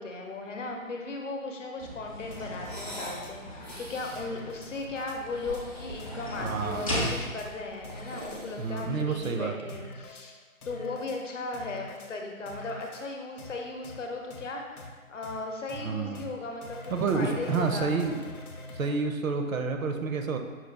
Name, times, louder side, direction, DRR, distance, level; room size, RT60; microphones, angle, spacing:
voice 1, 0.0-10.4 10.7-18.2, left 3 dB, 60° left, 2 dB, 0.8 m, -37 dB
sound 1, 1.8-9.3, equal, 25° left, 0.5 m, -38 dB
sound 2, 2.3-3.3 3.7-3.8 4.1-5.2 5.5-5.6 6.0-7.0 7.4-7.5 7.8-8.4 8.8-9.3 9.7-10.3 10.6-11.2 11.5-12.1 12.5-13.0 13.4-13.5 13.8-14.0 14.3-14.4 14.8-14.9 15.2-15.4 15.7-15.8 16.1-16.3 16.6-18.9, left 2 dB, 90° left, 0.7 m, -45 dB
sound 3, 2.6-3.2 3.6-4.3 5.1-6.3 6.6-7.3 7.7-9.3, equal, 30° right, 0.4 m, -44 dB
voice 2, 6.4-6.8 8.6-9.8 15.8-16.3 16.9-18.2 18.7-20.4, right 4 dB, 70° right, 5 dB, 0.6 m, -29 dB
5.6 x 2.4 x 3.5 m, 1.5 s
figure-of-eight pair, 150°, 43 cm